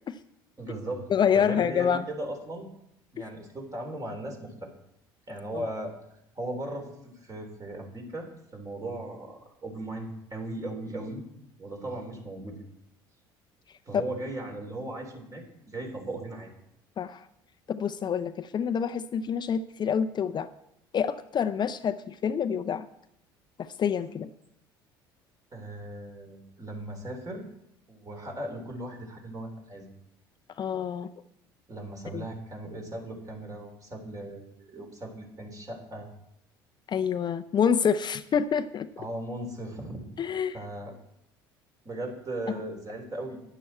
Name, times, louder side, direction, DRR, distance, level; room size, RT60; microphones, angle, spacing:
voice 1, 0.6-1.1 1.3-2.7 3.1-4.7 5.3-5.9 6.4-11.2 11.6-12.6 13.9-16.5 25.5-27.5 27.9-29.9 31.7-36.1 39.0-40.1 40.5-41.0 41.8-43.4, right 1 dB, 30° right, 2 dB, 3.8 m, -37 dB
voice 2, 1.1-2.0 3.2-3.3 5.5-5.6 13.9-14.0 17.0-17.3 17.7-20.5 20.9-22.9 23.6-24.3 30.6-31.1 32.1-32.2 36.9-38.9 40.2-40.6 42.5-42.6, left 7 dB, 40° left, 10 dB, 0.6 m, -27 dB
11.5 x 10.0 x 4.4 m, 0.78 s
hypercardioid pair, 70°, 12 cm